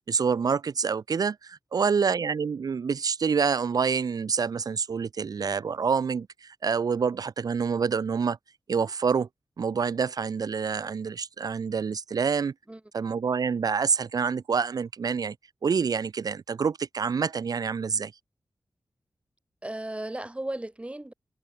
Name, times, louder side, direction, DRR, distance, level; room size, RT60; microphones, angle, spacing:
voice 1, 0.1-8.4 8.7-9.3 9.6-12.5 12.9-15.3 15.6-18.1, right 6 dB, 70° right, 0.8 m, -27 dB
voice 2, 19.6-21.1, right 1 dB, 20° right, 3.5 m, -36 dB
cardioid pair, 60°, 7 cm